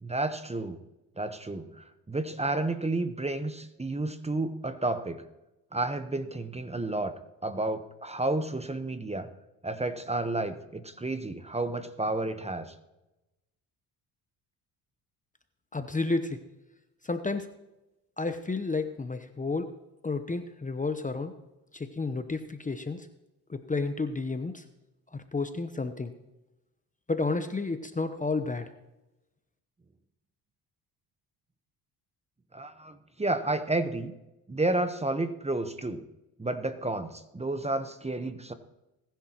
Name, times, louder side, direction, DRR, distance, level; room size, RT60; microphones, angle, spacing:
voice 1, 0.0-0.8 1.2-5.2 5.7-7.1 7.4-9.3 9.6-12.7 32.5-34.1 34.5-36.0 36.4-38.5, right 2 dB, 15° right, 10 dB, 1.1 m, -31 dB
voice 2, 15.7-16.4 17.0-17.5 18.2-19.7 20.0-21.3 21.7-23.1 23.5-24.6 25.1-26.1 27.1-28.7, left 3 dB, 15° left, 9 dB, 1.0 m, -31 dB
20.5 x 10.5 x 3.0 m, 0.96 s
hypercardioid pair, 65°, 45 cm